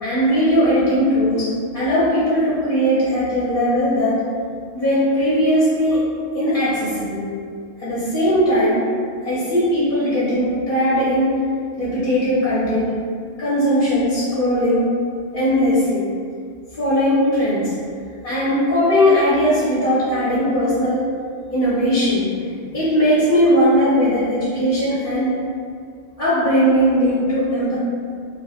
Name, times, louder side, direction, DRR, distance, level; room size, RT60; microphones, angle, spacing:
voice 1, 0.0-4.2 4.7-6.0 6.3-7.3 7.8-8.8 9.2-11.4 11.8-12.9 13.4-14.9 15.3-16.1 16.7-17.7 18.2-21.1 21.5-22.3 22.7-25.4 26.2-27.8, equal, 50° left, -10 dB, 0.8 m, -18 dB
3.1 x 2.3 x 2.3 m, 2.2 s
omnidirectional pair, 1.2 m